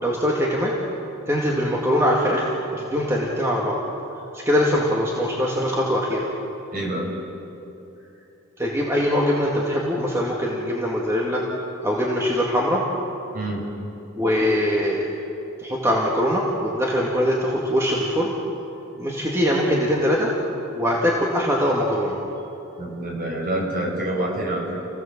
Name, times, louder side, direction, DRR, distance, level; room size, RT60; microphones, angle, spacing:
voice 1, 0.0-0.7 1.3-3.8 4.3-6.3 8.6-11.4 11.8-12.8 14.2-15.1 15.6-18.3 19.0-20.3 20.7-22.2, equal, 15° right, -3 dB, 2.1 m, -22 dB
voice 2, 6.7-7.1 13.3-13.7 22.8-24.9, right 1 dB, 45° right, -1 dB, 5.7 m, -27 dB
29.5 x 16.5 x 7.4 m, 2.8 s
head